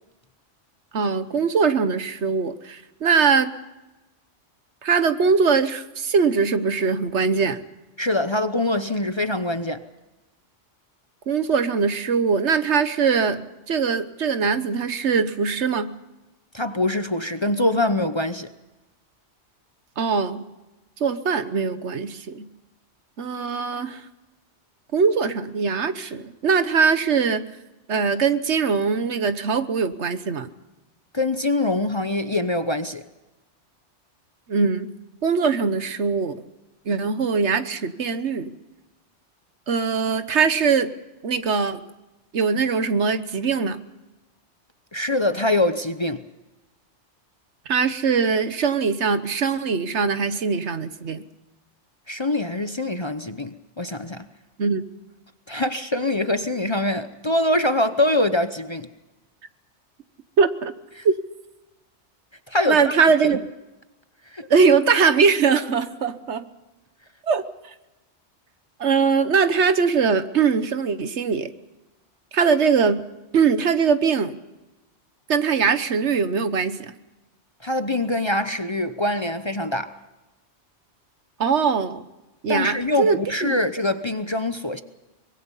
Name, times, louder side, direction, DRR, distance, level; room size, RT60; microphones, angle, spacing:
voice 1, 0.9-3.5 4.8-7.6 11.3-15.9 20.0-20.4 21.0-22.5 23.2-24.0 24.9-27.4 27.9-30.5 34.5-34.9 35.2-36.4 36.9-38.5 39.7-40.9 41.2-41.8 42.3-43.8 47.7-51.2 54.6-54.8 60.4-60.7 61.0-61.1 62.7-63.4 64.5-66.4 67.3-67.4 68.8-71.5 72.3-73.0 73.3-74.4 75.3-76.9 81.4-82.0 82.4-83.6, right 5 dB, 70° right, 1.4 m, -21 dB
voice 2, 8.0-9.8 16.5-18.5 31.1-33.0 44.9-46.2 52.1-54.3 55.5-58.9 61.0-61.1 62.5-62.9 63.2-63.4 64.3-64.5 77.6-79.9 82.5-84.8, left 1 dB, 25° left, 0.8 m, -24 dB
24.5 x 22.0 x 5.6 m
omnidirectional pair, 1.2 m